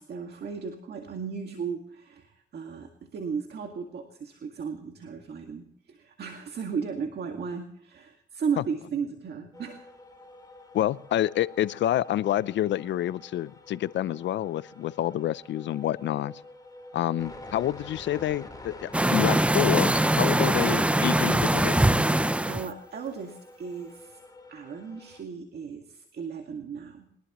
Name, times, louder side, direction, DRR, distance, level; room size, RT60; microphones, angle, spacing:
voice 1, 0.0-9.9 20.6-20.9 22.5-24.2 24.5-27.1, right 6 dB, 55° right, 4 dB, 2.0 m, -35 dB
sound 1, 9.5-25.2, left 2 dB, 20° left, 3.9 m, -47 dB
voice 2, 10.7-16.3 16.9-21.7, left 12 dB, 65° left, 18 dB, 0.5 m, -28 dB
sound 2, 18.9-22.7, right 1 dB, 5° right, 0.6 m, -22 dB
22.5 x 20.0 x 3.0 m, 0.73 s
cardioid pair, 90°, 20 cm